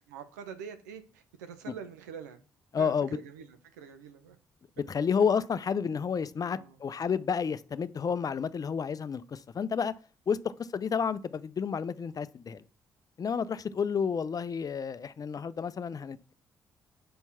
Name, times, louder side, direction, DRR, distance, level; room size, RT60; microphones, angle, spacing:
voice 1, 0.1-2.4 2.8-4.4 6.4-6.8, right 7 dB, 90° right, 0.7 m, -45 dB
voice 2, 2.7-3.2 4.9-9.9 10.3-12.6 13.2-16.3, left 6 dB, 45° left, 0.5 m, -30 dB
5.5 x 4.4 x 5.7 m
hypercardioid pair, 45°, 9 cm